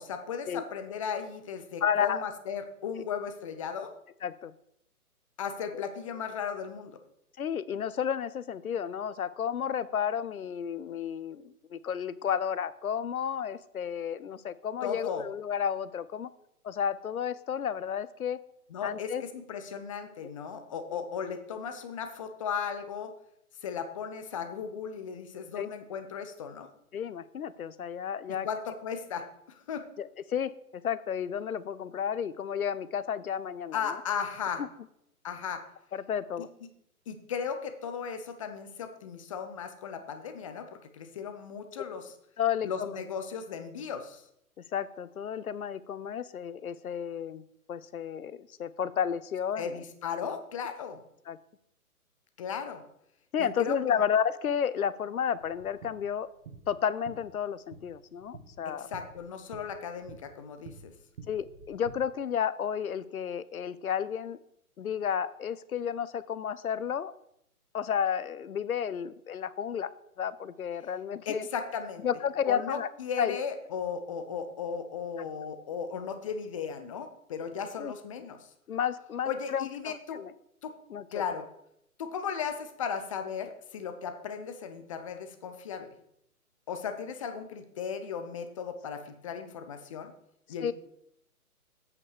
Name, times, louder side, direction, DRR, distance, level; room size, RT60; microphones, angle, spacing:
voice 1, 0.0-3.9 5.4-6.9 14.8-15.2 18.7-23.1 23.6-26.7 28.4-29.9 33.7-34.6 35.2-35.6 37.1-42.1 42.6-44.2 49.6-51.0 52.4-52.8 53.4-54.0 58.7-60.9 71.3-72.1 72.5-78.5 79.3-80.2 80.6-80.7 81.1-81.5 82.0-85.9 86.7-90.1 90.5-90.7, left 6 dB, 20° left, 8 dB, 0.7 m, -36 dB
voice 2, 1.8-2.2 4.2-4.5 5.7-5.8 7.4-16.3 16.6-18.4 18.8-19.2 20.9-21.0 25.6-25.7 26.9-28.5 30.0-33.8 34.6-34.7 35.9-36.5 42.4-43.0 44.7-47.4 47.7-49.8 51.3-51.4 53.3-56.3 56.7-58.9 61.3-64.4 64.8-67.1 67.7-69.9 70.2-71.5 72.0-72.9 73.2-73.4 75.2-75.3 77.8-77.9 78.7-80.3 80.9-81.2 90.6-90.7, left 8 dB, 70° left, 17 dB, 0.7 m, -32 dB
sound 1, 55.4-61.9, right 5 dB, 45° right, 2.1 m, -50 dB
8.4 x 5.5 x 6.5 m, 0.76 s
figure-of-eight pair, 135°, 45 cm